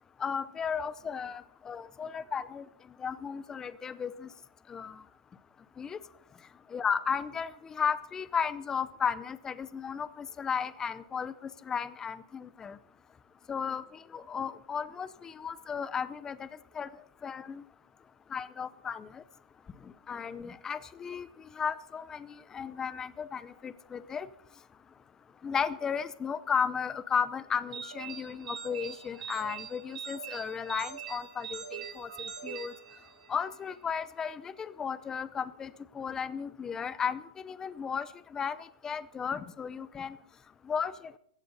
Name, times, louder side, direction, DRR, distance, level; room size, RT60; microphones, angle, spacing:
voice 1, 0.2-2.6 3.0-4.3 4.7-4.9 5.8-6.0 6.7-11.3 11.7-12.8 13.5-13.8 14.1-16.5 16.8-16.9 17.2-17.6 18.3-19.2 20.1-21.3 21.6-22.3 22.5-24.3 25.4-32.1 32.4-32.7 33.3-38.1 38.3-38.6 38.8-40.2 40.7-40.9, left 6 dB, 15° left, 16 dB, 0.6 m, -34 dB
sound 1, 27.7-33.5, right 7 dB, 80° right, 3.3 m, -42 dB
18.0 x 14.5 x 4.0 m, 0.68 s
supercardioid pair, 160°, 4 cm